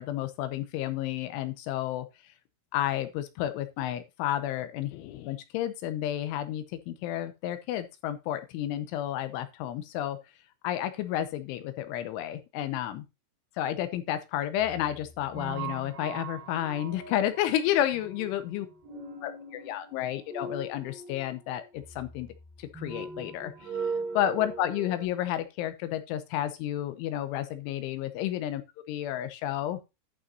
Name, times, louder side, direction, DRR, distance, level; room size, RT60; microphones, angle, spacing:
voice 1, 0.0-2.1 2.7-10.2 10.6-13.0 13.6-18.7 19.2-22.3 22.6-23.5 24.1-28.6 28.9-29.8, left 12 dB, 80° left, 10 dB, 3.0 m, -31 dB
sound 1, 14.6-25.0, right 4 dB, 45° right, 4.1 m, -40 dB
11.0 x 7.7 x 2.7 m, 0.25 s
omnidirectional pair, 5.8 m